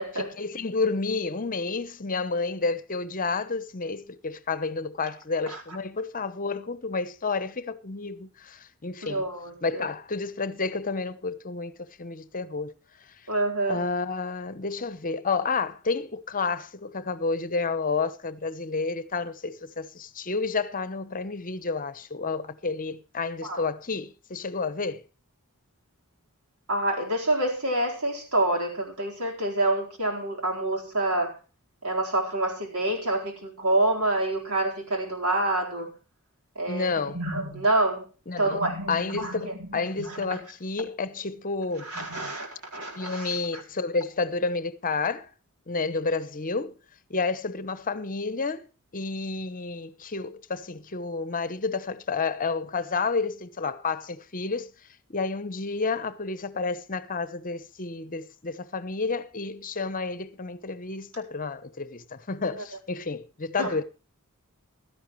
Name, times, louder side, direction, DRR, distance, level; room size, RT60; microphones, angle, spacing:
voice 1, 0.1-9.2 9.6-12.7 13.7-25.0 36.7-37.2 38.3-38.6 38.9-41.9 42.9-45.3 45.7-46.8 47.1-48.7 48.9-54.7 55.1-63.8, left 4 dB, 40° left, 0.9 m, -30 dB
voice 2, 9.0-9.8 13.3-13.8 23.4-23.6 26.7-31.3 31.8-35.9 36.6-38.0 38.4-40.4 41.8-43.6 62.5-62.6 63.6-63.7, right 1 dB, 85° right, 4.3 m, -27 dB
16.0 x 13.0 x 3.2 m
head